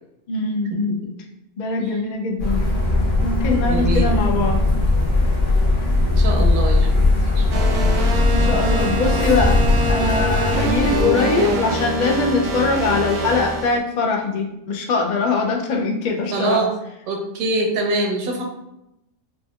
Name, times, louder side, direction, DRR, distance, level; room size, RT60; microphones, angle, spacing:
voice 1, 0.3-1.0 1.6-2.7 3.2-4.6 8.3-16.6, left 3 dB, 80° left, 1 dB, 0.4 m, -22 dB
sound 1, 2.4-11.0, left 2 dB, 30° left, 1.4 m, -19 dB
voice 2, 3.6-4.4 6.2-7.0 7.4-7.7 10.9-11.6 16.3-16.7 17.1-18.4, right 2 dB, 90° right, 1 dB, 1.2 m, -24 dB
sound 2, 7.5-13.8, right 1 dB, 65° right, 0.6 m, -25 dB
4.7 x 2.6 x 2.3 m, 0.84 s
omnidirectional pair, 1.5 m